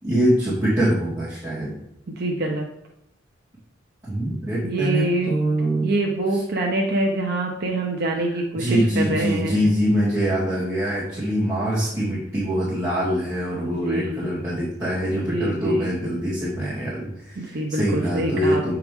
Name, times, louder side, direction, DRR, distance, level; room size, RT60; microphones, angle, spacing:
voice 1, 0.0-1.8 4.0-5.9 8.5-18.7, equal, 15° right, -13 dB, 2.5 m, -24 dB
voice 2, 2.2-2.6 4.6-5.3 5.8-9.6 13.6-14.3 15.1-16.0 17.4-18.7, right 1 dB, 55° right, 1 dB, 0.8 m, -25 dB
8.4 x 4.7 x 3.6 m, 0.77 s
head